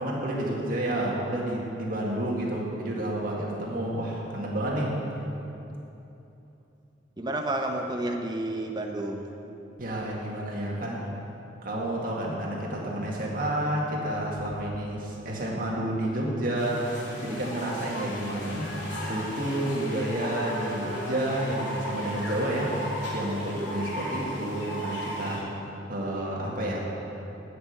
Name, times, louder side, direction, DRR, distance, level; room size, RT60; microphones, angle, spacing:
voice 1, 0.0-5.0 9.8-11.0 11.6-22.7 23.1-25.4 25.9-26.8, right 1 dB, 45° right, -3 dB, 2.0 m, -30 dB
voice 2, 7.2-9.3, right 1 dB, 20° right, 3 dB, 0.8 m, -30 dB
sound 1, 16.6-25.4, equal, 70° left, 2.6 m, -36 dB
11.0 x 6.3 x 8.1 m, 2.9 s
head